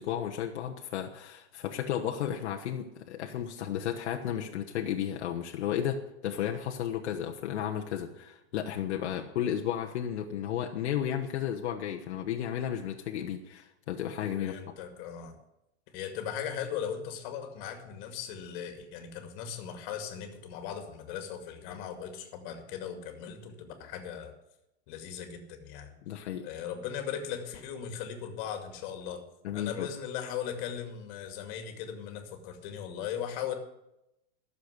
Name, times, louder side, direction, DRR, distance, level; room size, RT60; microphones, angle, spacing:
voice 1, 0.0-14.6 26.1-26.5 29.4-29.9, left 10 dB, 75° left, 2 dB, 1.2 m, -33 dB
voice 2, 14.4-15.4 15.9-24.3 24.9-25.9 26.4-29.2 29.5-33.5, left 8 dB, 45° left, 6 dB, 2.2 m, -38 dB
13.5 x 7.1 x 8.1 m, 0.88 s
supercardioid pair, 155°, 34 cm